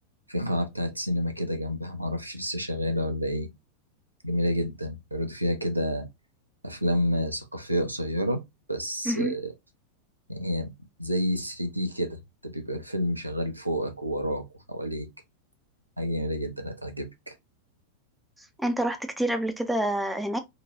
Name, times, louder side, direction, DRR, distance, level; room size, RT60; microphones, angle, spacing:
voice 1, 0.3-3.5 4.2-6.1 6.6-8.4 8.7-9.5 10.3-10.7 11.0-15.1 16.0-17.3, equal, 85° right, 0.5 m, -29 dB
voice 2, 18.6-20.4, right 1 dB, 5° right, 0.4 m, -27 dB
2.8 x 2.2 x 2.8 m
figure-of-eight pair, 90°, 0 cm